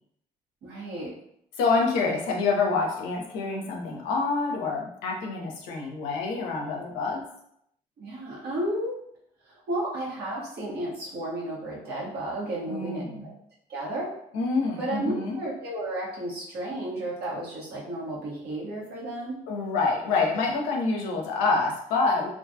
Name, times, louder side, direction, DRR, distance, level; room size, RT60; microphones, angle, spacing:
voice 1, 0.6-1.1 8.0-8.9 9.4-13.3 13.7-14.1 14.8-19.4, right 1 dB, 65° right, -6 dB, 1.0 m, -33 dB
voice 2, 1.6-7.2 12.7-13.3 14.3-15.4 19.5-22.3, left 4 dB, 85° left, 0 dB, 0.5 m, -27 dB
2.4 x 2.3 x 2.6 m, 0.74 s
hypercardioid pair, 55°, 18 cm